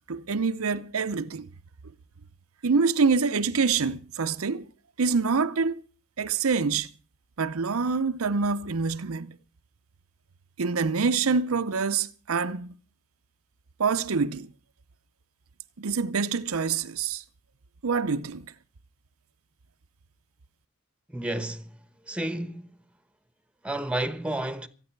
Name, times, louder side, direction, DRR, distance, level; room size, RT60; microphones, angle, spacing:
voice 1, 0.0-1.5 2.6-4.7 5.0-5.8 6.2-6.9 7.4-9.4 10.6-12.8 13.8-14.5 15.8-17.2 17.8-18.5, right 5 dB, 85° right, 0.7 m, -26 dB
voice 2, 21.1-21.8 22.1-22.7 23.6-24.7, right 1 dB, 5° right, 1.1 m, -31 dB
26.5 x 9.8 x 4.6 m
head